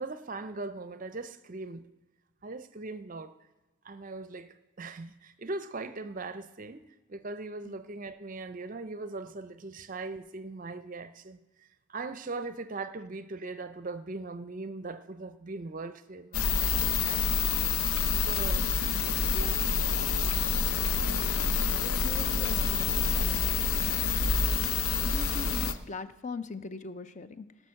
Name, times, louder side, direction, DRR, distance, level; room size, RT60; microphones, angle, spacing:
voice 1, 0.0-1.9 2.4-3.3 3.8-17.2 18.2-18.7 19.3-19.8, right 3 dB, 40° right, 0.5 m, -40 dB
sound 1, 16.3-25.7, left 5 dB, 80° left, 0.7 m, -27 dB
voice 2, 17.0-17.4 18.8-19.1 21.1-24.2 25.0-27.5, left 4 dB, 35° left, 0.5 m, -42 dB
17.5 x 6.3 x 6.4 m
head